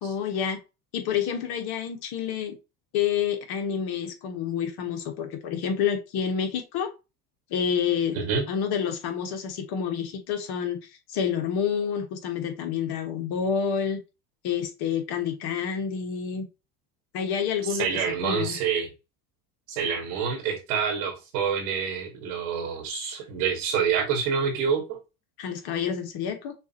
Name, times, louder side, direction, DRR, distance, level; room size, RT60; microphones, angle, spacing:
voice 1, 0.0-0.6 0.9-2.5 2.9-6.9 7.5-8.2 8.5-10.8 11.1-14.0 14.4-16.4 17.1-17.9 18.2-18.6 25.4-26.5, left 7 dB, 55° left, 1.5 m, -28 dB
voice 2, 17.7-18.9 19.7-25.0, right 6 dB, 80° right, 1.8 m, -27 dB
6.2 x 2.6 x 2.9 m
supercardioid pair, 95°, 45 cm